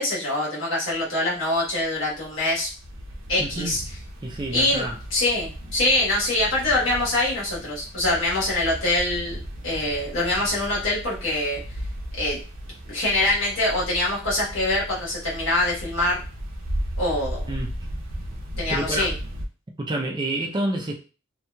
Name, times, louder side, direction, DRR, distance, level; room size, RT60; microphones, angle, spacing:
voice 1, 0.0-2.7 3.3-3.8 4.5-9.4 9.6-11.6 12.1-12.4 12.9-16.2 17.0-17.4 18.6-19.1, left 1 dB, 70° left, -6 dB, 1.3 m, -24 dB
sound 1, 0.9-1.0 1.3-19.4, equal, 80° right, 0.6 m, -36 dB
voice 2, 3.4-3.8 4.2-5.0 17.5-17.7 18.7-19.1 19.8-20.9, right 1 dB, 20° right, 1 dB, 0.4 m, -28 dB
2.9 x 2.7 x 2.2 m, 0.36 s
head